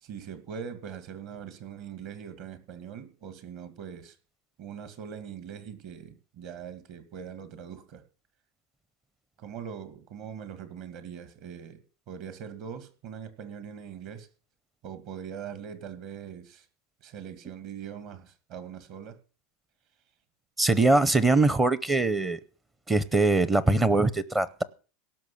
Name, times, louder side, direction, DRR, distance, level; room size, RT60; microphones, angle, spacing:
voice 1, 0.0-4.2 4.6-8.0 9.4-14.3 14.8-16.7 17.0-19.2, right 8 dB, 45° right, 2.2 m, -42 dB
voice 2, 20.6-22.4 22.9-24.6, right 2 dB, 10° right, 0.7 m, -22 dB
17.5 x 6.2 x 8.5 m
supercardioid pair, 160°, 0 cm